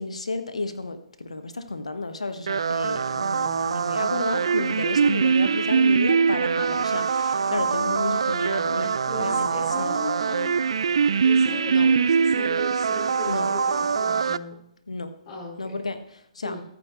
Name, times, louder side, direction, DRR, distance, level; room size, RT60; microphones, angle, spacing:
voice 1, 0.0-9.9 11.7-11.9 13.3-13.5 14.9-15.1 15.6-16.6, left 3 dB, 70° left, 10 dB, 1.5 m, -32 dB
sound 1, 2.5-14.4, right 6 dB, 55° right, 0.4 m, -23 dB
voice 2, 9.1-10.6 11.2-14.6 15.3-15.8 16.4-16.6, left 2 dB, 30° left, -5 dB, 4.4 m, -36 dB
23.0 x 9.5 x 3.2 m, 0.71 s
figure-of-eight pair, 130°, 4 cm